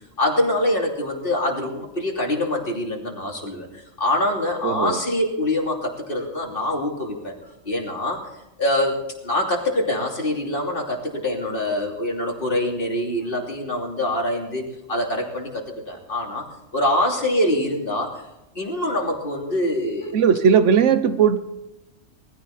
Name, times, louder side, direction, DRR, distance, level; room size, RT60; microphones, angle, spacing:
voice 1, 0.2-7.3 7.6-8.3 8.6-16.4 16.7-18.2 18.5-20.1, left 1 dB, 50° left, 0 dB, 3.2 m, -24 dB
voice 2, 4.6-5.0 20.1-21.4, right 7 dB, 85° right, 11 dB, 1.2 m, -17 dB
20.0 x 14.5 x 4.2 m, 0.91 s
omnidirectional pair, 1.2 m